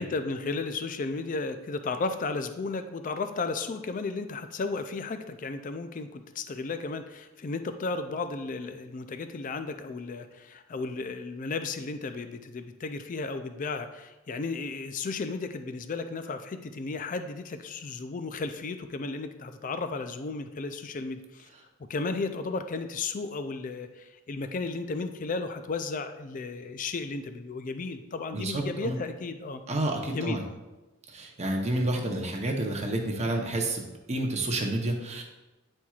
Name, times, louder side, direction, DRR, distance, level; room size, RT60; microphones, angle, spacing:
voice 1, 0.0-21.5 21.9-29.6 30.1-30.4, left 3 dB, 40° left, 9 dB, 0.4 m, -34 dB
voice 2, 28.3-29.0 29.7-30.4 31.1-33.8 34.1-35.2, right 1 dB, 30° right, 1 dB, 0.8 m, -29 dB
9.5 x 4.4 x 2.4 m, 1.1 s
head